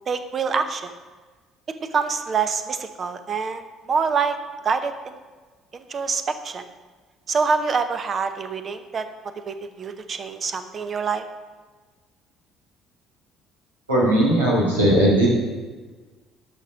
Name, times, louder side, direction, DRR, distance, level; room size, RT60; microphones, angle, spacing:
voice 1, 0.1-0.9 1.8-3.6 3.9-4.4 4.6-5.2 5.9-6.6 7.3-9.1 9.5-11.2, right 5 dB, 40° right, 10 dB, 0.8 m, -25 dB
voice 2, 13.9-15.3, right 1 dB, 85° right, -6 dB, 2.6 m, -18 dB
11.0 x 6.2 x 5.0 m, 1.4 s
figure-of-eight pair, 50°, 0 cm